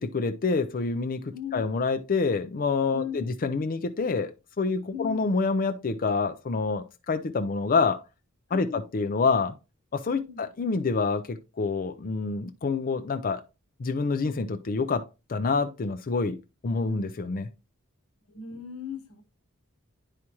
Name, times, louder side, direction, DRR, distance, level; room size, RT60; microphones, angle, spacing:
voice 1, 0.0-4.3 4.6-8.0 8.5-9.5 9.9-13.4 13.8-16.4 16.6-17.5, left 4 dB, 40° left, 0.5 m, -27 dB
voice 2, 1.3-1.7 2.9-3.4 4.9-5.3 8.5-8.9 10.1-10.5 16.9-17.0 18.3-19.2, left 8 dB, 90° left, 1.1 m, -38 dB
9.6 x 4.9 x 2.9 m
head